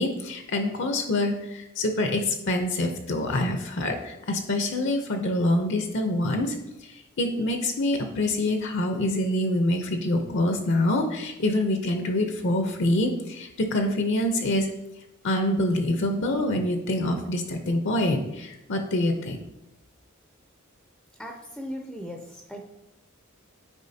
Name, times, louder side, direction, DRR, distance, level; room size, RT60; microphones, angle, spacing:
voice 1, 0.0-6.5 7.2-14.7 15.2-19.4, left 1 dB, 60° left, 5 dB, 0.7 m, -25 dB
voice 2, 21.2-22.2 22.5-22.6, equal, ahead, 1 dB, 0.5 m, -37 dB
9.7 x 4.5 x 2.7 m, 0.91 s
head